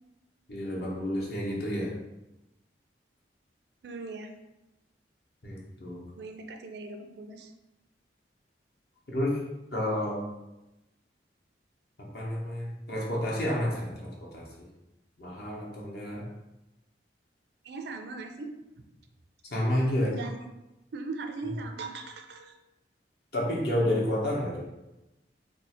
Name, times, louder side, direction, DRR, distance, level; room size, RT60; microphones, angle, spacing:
voice 1, 0.5-1.9 5.4-6.0 9.1-9.4 9.7-10.2 12.1-14.7 15.2-16.2 19.5-20.1 23.3-24.6, left 1 dB, 60° left, -3 dB, 0.9 m, -30 dB
voice 2, 3.8-4.3 6.2-7.5 17.6-18.5 20.0-20.4 20.9-22.6, right 3 dB, 65° right, 5 dB, 0.4 m, -39 dB
2.6 x 2.4 x 4.2 m, 0.97 s
head